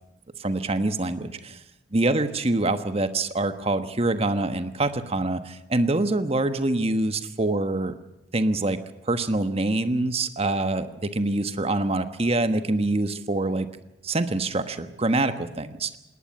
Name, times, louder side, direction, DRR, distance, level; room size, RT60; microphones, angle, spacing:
voice 1, 0.4-1.6 1.9-8.0 8.3-8.8 9.1-13.7 14.0-16.0, right 2 dB, 35° right, 10 dB, 1.3 m, -25 dB
20.0 x 18.5 x 8.6 m, 0.89 s
head